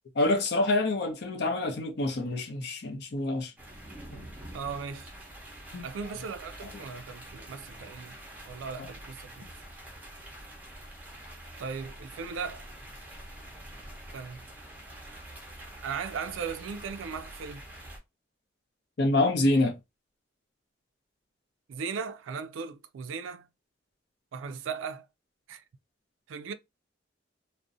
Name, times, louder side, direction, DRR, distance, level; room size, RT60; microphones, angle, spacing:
voice 1, 0.2-3.5 4.1-4.3 5.7-5.8 19.0-19.7, left 2 dB, 60° left, 0.6 m, -26 dB
sound 1, 3.6-18.0, right 1 dB, 10° right, 0.6 m, -46 dB
voice 2, 4.5-5.1 5.8-8.2 8.5-9.4 11.6-12.6 14.1-14.5 15.8-17.6 21.7-23.5 24.3-25.1 25.5-25.6 26.3-26.5, right 5 dB, 90° right, 0.3 m, -37 dB
2.5 x 2.1 x 2.5 m
head